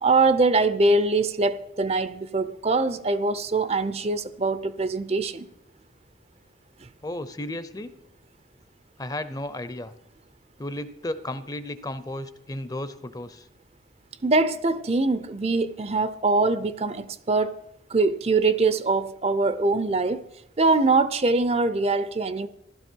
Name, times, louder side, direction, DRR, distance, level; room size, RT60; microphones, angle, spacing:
voice 1, 0.0-5.5 14.2-17.6 17.9-20.2 20.6-22.5, right 3 dB, 35° right, 0.5 m, -23 dB
voice 2, 7.0-7.9 9.0-9.9 10.6-13.5, left 1 dB, 20° left, 0.6 m, -34 dB
15.5 x 12.5 x 4.5 m
head